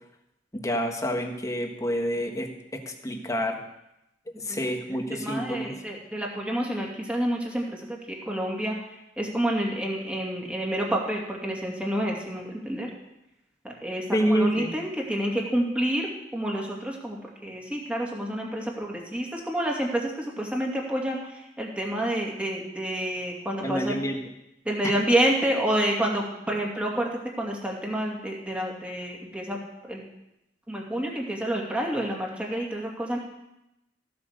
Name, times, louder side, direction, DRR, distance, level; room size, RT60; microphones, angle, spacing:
voice 1, 0.5-3.6 4.4-5.7 14.1-14.8 23.6-24.2 24.8-24.9, equal, 20° left, 4 dB, 1.5 m, -28 dB
voice 2, 4.5-12.9 13.6-24.0 24.6-29.6 29.9-30.0 30.7-33.2, right 1 dB, 5° right, -1 dB, 2.6 m, -29 dB
15.0 x 7.8 x 6.7 m, 0.88 s
head